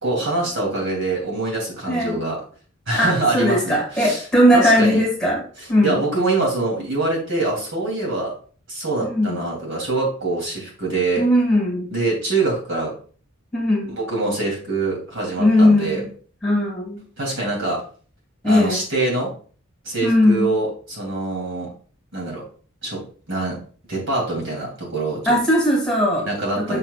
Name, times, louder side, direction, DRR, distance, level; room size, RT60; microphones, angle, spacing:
voice 1, 0.0-2.4 2.9-4.2 4.5-5.0 5.6-8.3 8.7-11.2 11.9-12.9 13.9-16.0 17.2-17.8 18.4-19.3 19.8-21.7 22.1-22.4 22.8-23.0 23.3-23.6 23.9-25.4 26.2-26.8, right 2 dB, 55° right, -2 dB, 3.0 m, -24 dB
voice 2, 1.9-2.2 3.0-5.4 5.7-6.0 9.0-9.4 11.2-11.9 13.5-13.9 15.4-16.1 16.4-17.0 18.4-18.8 20.0-20.5 25.3-26.3 26.6-26.8, left 1 dB, 5° left, -3 dB, 2.2 m, -18 dB
6.7 x 6.1 x 2.4 m, 0.42 s
head